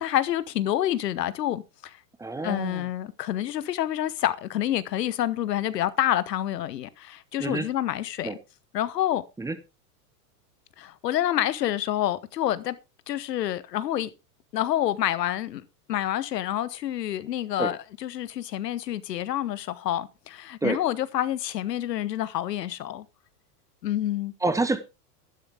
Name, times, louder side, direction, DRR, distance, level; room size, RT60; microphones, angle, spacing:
voice 1, 0.0-2.0 2.4-8.4 8.7-9.2 10.8-12.8 13.1-14.1 14.5-15.6 15.9-23.1 23.8-24.3, left 12 dB, 85° left, 1.1 m, -28 dB
voice 2, 2.2-2.9 7.4-7.7 8.2-8.4 9.4-9.6 17.6-17.7 20.6-20.8 24.4-24.8, right 2 dB, 5° right, 0.8 m, -27 dB
11.5 x 10.5 x 3.5 m
hypercardioid pair, 130°, 48 cm